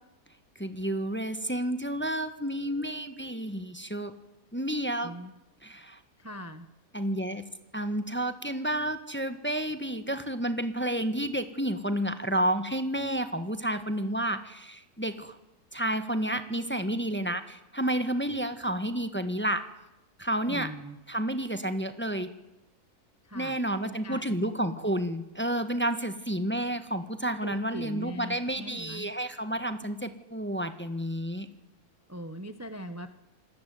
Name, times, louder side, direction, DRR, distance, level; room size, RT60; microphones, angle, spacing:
voice 1, 0.6-4.1 4.5-5.1 5.6-6.0 6.9-7.4 7.7-15.4 15.7-19.6 20.2-20.7 21.1-22.3 23.3-31.5, right 1 dB, 5° left, 9 dB, 1.5 m, -30 dB
voice 2, 5.0-5.3 6.2-6.7 20.5-21.0 23.2-23.6 23.8-24.5 27.4-29.1 32.1-33.1, equal, 10° right, 9 dB, 1.2 m, -41 dB
27.5 x 20.0 x 9.5 m, 0.92 s
omnidirectional pair, 1.7 m